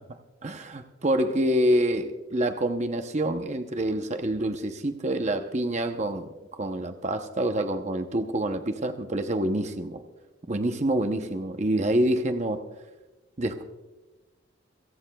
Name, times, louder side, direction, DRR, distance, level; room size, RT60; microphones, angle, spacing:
voice 1, 0.4-6.3 6.6-10.0 10.5-12.6 13.4-13.6, right 1 dB, 35° right, 7 dB, 0.8 m, -27 dB
27.0 x 17.5 x 2.3 m, 1.1 s
head